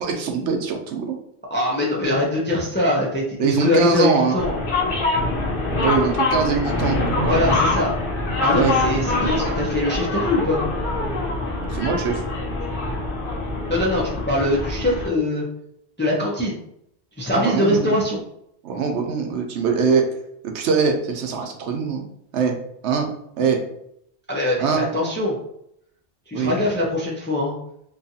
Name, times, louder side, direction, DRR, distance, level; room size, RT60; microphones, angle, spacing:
voice 1, 0.0-1.2 3.4-4.4 5.8-7.4 8.5-8.8 9.1-9.2 11.7-12.2 17.3-18.0 18.6-20.1 20.4-22.0 22.3-22.6 22.8-23.1 23.4-23.6 24.6-24.8 26.3-26.6, right 5 dB, 85° right, 4 dB, 0.9 m, -22 dB
voice 2, 1.5-4.6 7.2-7.9 8.4-10.6 13.7-15.4 16.0-16.6 17.2-18.2 24.3-25.3 26.3-27.6, left 1 dB, 20° left, -3 dB, 0.3 m, -22 dB
sound 1, 4.4-15.1, left 2 dB, 60° left, 0.8 m, -24 dB
2.8 x 2.4 x 2.6 m, 0.74 s
omnidirectional pair, 1.1 m